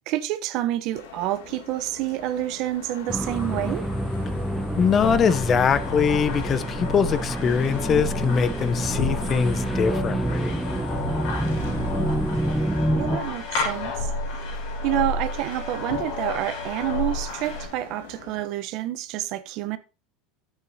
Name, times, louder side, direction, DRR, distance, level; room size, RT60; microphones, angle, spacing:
voice 1, 0.1-3.9 11.5-14.1 14.8-19.8, right 14 dB, 60° right, 0.7 m, -29 dB
sound 1, 0.9-18.5, left 6 dB, 90° left, 1.5 m, -45 dB
sound 2, 3.1-13.2, right 1 dB, 5° right, 0.8 m, -28 dB
voice 2, 4.8-10.6, left 6 dB, 35° left, 0.6 m, -23 dB
sound 3, 5.0-17.7, left 2 dB, 70° left, 3.6 m, -31 dB
11.0 x 8.1 x 2.7 m
supercardioid pair, 105°, 0 cm